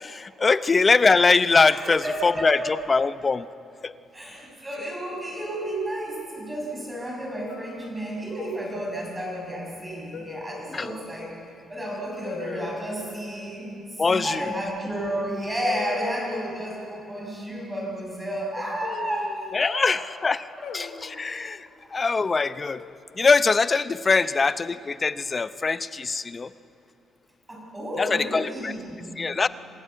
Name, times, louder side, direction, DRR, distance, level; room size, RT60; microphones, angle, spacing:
voice 1, 0.0-3.4 3.8-3.9 10.7-10.9 14.0-14.4 19.5-20.4 20.7-21.7 21.9-22.8 23.2-26.5 28.0-28.7 29.2-29.5, left 4 dB, 30° left, 15 dB, 0.6 m, -22 dB
voice 2, 1.7-2.8 4.1-11.4 11.7-20.0 20.6-21.1 24.1-24.3 27.5-29.2, right 1 dB, 15° right, -2 dB, 5.7 m, -32 dB
sound 1, 5.4-6.2 7.5-7.9 8.3-8.7 10.1-10.8 12.2-12.8 14.8-14.9 15.6-16.6 18.6-19.6 20.6-21.3 22.5-23.1, left 6 dB, 75° left, 1.8 m, -39 dB
25.5 x 13.5 x 9.0 m, 2.6 s
cardioid pair, 100°, 0 cm